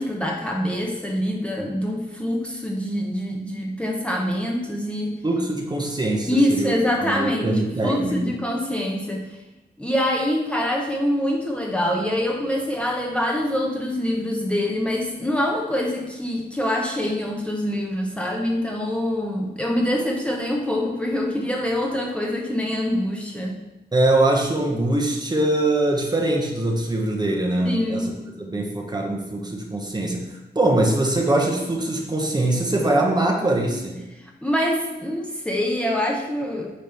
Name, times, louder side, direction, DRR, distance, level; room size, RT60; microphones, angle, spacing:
voice 1, 0.0-5.2 6.3-9.2 9.8-23.6 27.6-28.1 34.2-36.7, left 1 dB, 5° left, 0 dB, 0.8 m, -25 dB
voice 2, 5.2-8.4 23.9-34.1, right 2 dB, 25° right, 1 dB, 0.9 m, -23 dB
8.5 x 3.1 x 5.5 m, 1.0 s
wide cardioid pair, 155°, 18 cm